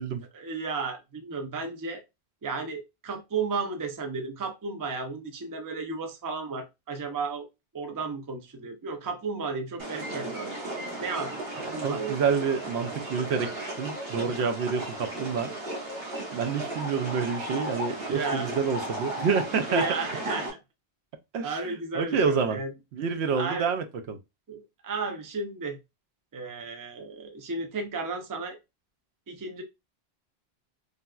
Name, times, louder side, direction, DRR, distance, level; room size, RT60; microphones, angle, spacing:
voice 1, 0.3-2.0 2.4-7.5 7.7-10.6 11.0-12.2 18.1-18.5 19.7-20.6 21.4-22.7 23.3-23.7 24.5-25.8 26.3-28.6 29.3-29.6, right 4 dB, 30° right, 0.4 m, -33 dB
sound 1, 9.8-20.5, right 1 dB, 65° right, 1.2 m, -35 dB
voice 2, 11.7-15.5 16.3-19.8 21.3-22.6 22.9-24.2, right 5 dB, 85° right, 0.8 m, -28 dB
3.4 x 2.6 x 2.3 m
omnidirectional pair, 1.1 m